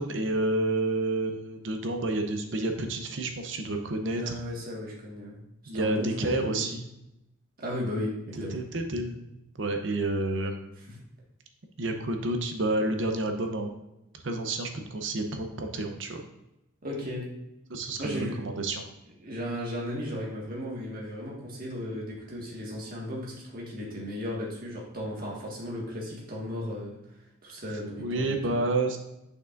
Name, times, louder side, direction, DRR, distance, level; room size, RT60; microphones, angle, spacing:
voice 1, 0.0-4.4 5.7-6.9 8.5-9.2 9.5-10.7 11.8-13.7 14.2-16.2 17.7-18.9 28.0-29.0, right 2 dB, 65° right, 5 dB, 0.7 m, -29 dB
voice 2, 4.1-5.4 5.7-6.7 7.6-8.6 10.9-11.0 16.8-17.3 18.0-18.4 19.2-27.0 27.4-28.6, left 1 dB, 45° right, -3 dB, 1.7 m, -35 dB
6.5 x 5.7 x 2.5 m, 0.88 s
head